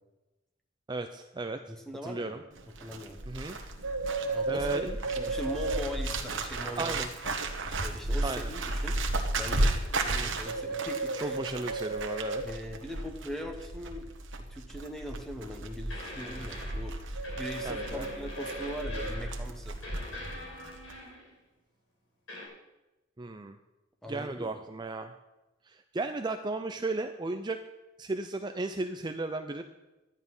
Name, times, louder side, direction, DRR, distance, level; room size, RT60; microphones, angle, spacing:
voice 1, 0.9-1.6 2.0-2.4 3.3-3.6 4.5-5.0 6.8-7.1 8.2-8.5 10.1-10.4 11.2-12.4 17.6-18.1 23.2-23.6 24.1-25.1 25.7-27.6 28.0-29.6, right 2 dB, 25° right, 7 dB, 0.5 m, -35 dB
voice 2, 1.7-3.2 4.3-7.3 7.8-9.0 9.4-9.8 10.1-11.3 12.4-14.1 14.4-19.8 24.0-24.6, equal, ahead, 3 dB, 1.2 m, -41 dB
Bird, 2.6-20.4 20.6-21.0, right 2 dB, 70° right, 1.3 m, -33 dB
sound 1, 15.0-15.1 15.9-17.0 17.2-19.5 19.8-21.4 22.3-22.5, left 1 dB, 80° left, 5.5 m, -43 dB
12.0 x 10.5 x 5.5 m, 1.0 s
head